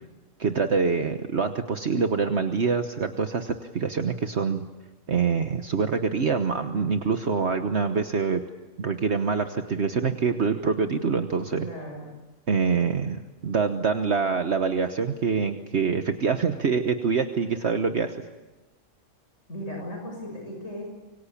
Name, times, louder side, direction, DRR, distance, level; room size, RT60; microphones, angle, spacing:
voice 1, 0.4-4.7 5.1-8.4 8.8-11.7 12.5-18.3, right 5 dB, 55° right, 6 dB, 1.4 m, -25 dB
voice 2, 11.6-12.1 19.5-20.8, equal, 65° left, 0 dB, 6.3 m, -36 dB
26.0 x 23.5 x 8.7 m, 1.1 s
omnidirectional pair, 1.4 m